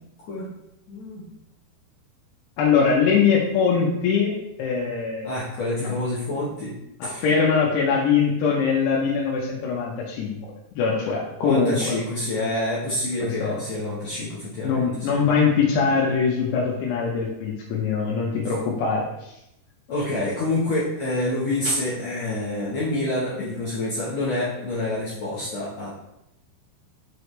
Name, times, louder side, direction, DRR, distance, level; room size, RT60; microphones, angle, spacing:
voice 1, 0.9-1.2 5.2-6.7 7.0-7.2 11.4-15.2 19.9-25.9, left 1 dB, 60° left, -8 dB, 1.8 m, -27 dB
voice 2, 2.6-5.3 7.0-10.4 10.7-11.9 13.2-13.6 14.6-19.1, left 5 dB, 85° left, -3 dB, 3.0 m, -22 dB
6.9 x 4.9 x 3.2 m, 0.85 s
omnidirectional pair, 4.7 m